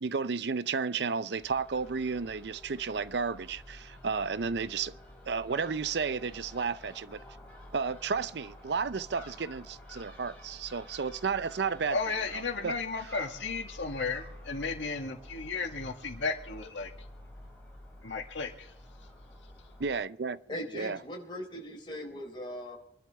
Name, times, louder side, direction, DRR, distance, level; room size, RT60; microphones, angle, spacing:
voice 1, 0.0-4.9 5.3-7.2 7.7-12.0 12.3-12.7 19.8-20.4 20.7-21.0, right 5 dB, 65° right, 0.5 m, -32 dB
Crow / Gull seagull, 1.3-20.0, left 1 dB, 5° left, 5.9 m, -50 dB
voice 2, 11.9-16.9 18.0-18.7, left 4 dB, 90° left, 2.0 m, -34 dB
voice 3, 20.5-22.8, equal, 25° left, 3.8 m, -39 dB
25.0 x 11.5 x 3.3 m
head